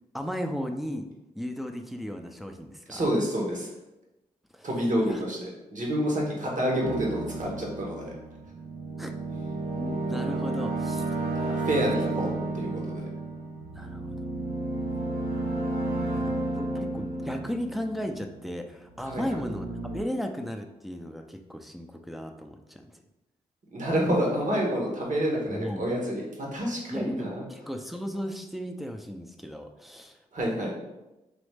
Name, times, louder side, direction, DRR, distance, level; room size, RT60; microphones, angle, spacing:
voice 1, 0.1-1.1 1.4-3.0 4.5-4.7 5.0-5.2 9.0-9.1 9.7-11.0 11.4-11.7 13.7-14.2 15.2-15.5 16.1-23.0 25.5-25.8 26.9-30.2, equal, ahead, 4 dB, 0.5 m, -36 dB
voice 2, 2.9-3.7 4.6-8.1 11.6-13.1 19.0-19.2 23.7-27.4 30.3-30.7, equal, 55° right, -2 dB, 1.4 m, -28 dB
sound 1, 6.8-18.5 18.9-20.0, right 2 dB, 80° right, 0.7 m, -32 dB
4.0 x 3.0 x 3.4 m, 1.0 s
supercardioid pair, 40°, 16 cm